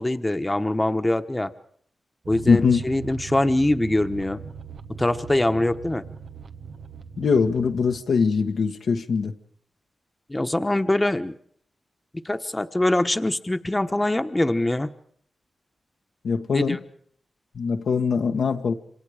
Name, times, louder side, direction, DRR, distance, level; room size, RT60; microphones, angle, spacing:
voice 1, 0.0-1.5 2.3-4.4 5.0-6.0 10.3-11.3 12.2-14.9 16.5-16.8, left 1 dB, 20° left, 8 dB, 1.1 m, -23 dB
sound 1, 2.2-8.0, right 6 dB, 85° right, 1.1 m, -40 dB
voice 2, 2.5-2.8 7.2-9.3 16.2-16.8 17.5-18.7, left 5 dB, 85° left, 4 dB, 1.3 m, -22 dB
27.0 x 25.5 x 5.0 m, 0.62 s
cardioid pair, 55°, 0 cm